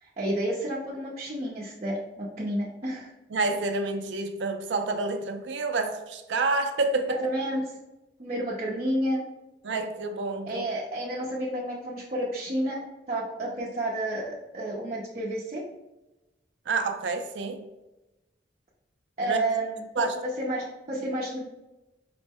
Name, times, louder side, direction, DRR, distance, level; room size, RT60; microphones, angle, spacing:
voice 1, 0.0-3.1 7.1-7.7 8.2-9.2 10.5-15.6 19.2-20.1 20.4-21.5, right 1 dB, 40° right, -6 dB, 0.6 m, -30 dB
voice 2, 3.3-7.2 9.6-10.7 16.7-17.7 19.2-19.4 20.0-20.2, right 3 dB, 80° right, 7 dB, 0.5 m, -28 dB
5.0 x 2.1 x 3.4 m, 1.0 s
head